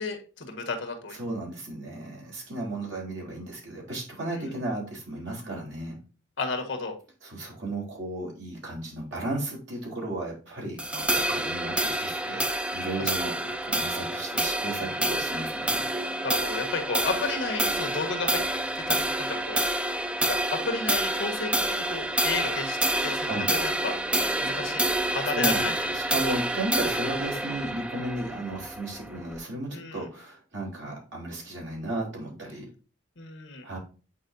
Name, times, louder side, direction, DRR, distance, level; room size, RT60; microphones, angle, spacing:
voice 1, 0.0-1.2 4.3-4.5 6.4-7.0 10.9-11.2 13.0-13.1 14.8-15.0 16.2-18.4 18.7-19.7 20.2-24.0 24.4-25.9 29.7-30.0 33.2-33.7, left 3 dB, 65° left, 4 dB, 1.6 m, -33 dB
voice 2, 1.1-6.0 7.2-15.8 23.2-23.5 25.0-32.7 33.6-33.8, right 2 dB, 65° right, -2 dB, 3.4 m, -34 dB
sound 1, 10.8-29.4, right 1 dB, 5° right, 0.3 m, -28 dB
8.5 x 4.7 x 2.6 m, 0.36 s
head